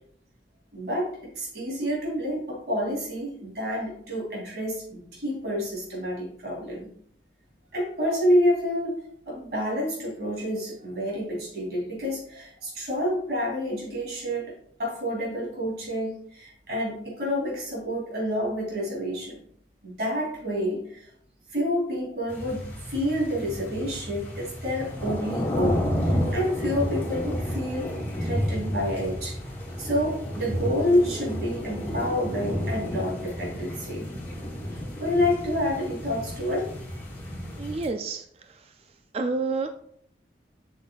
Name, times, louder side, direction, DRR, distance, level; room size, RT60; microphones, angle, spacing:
voice 1, 0.7-6.9 7.7-9.0 9.2-14.5 14.8-19.4 19.8-21.1 21.5-27.9 28.2-29.4 29.8-34.1 34.7-36.7, equal, 65° right, -3 dB, 2.9 m, -28 dB
sound 1, 22.3-37.9, equal, 15° left, 2.7 m, -31 dB
voice 2, 37.6-38.2 39.1-39.7, right 3 dB, 35° right, 7 dB, 0.3 m, -28 dB
7.5 x 6.2 x 2.4 m, 0.66 s
head